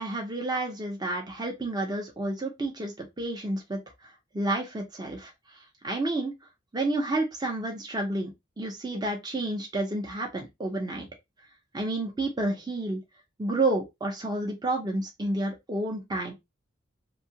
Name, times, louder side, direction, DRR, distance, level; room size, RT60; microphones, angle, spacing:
voice 1, 0.0-3.8 4.3-5.3 5.8-6.3 6.7-8.3 8.6-11.1 11.7-13.0 13.4-16.3, right 2 dB, 20° right, 0.6 m, -30 dB
2.7 x 2.3 x 2.8 m
head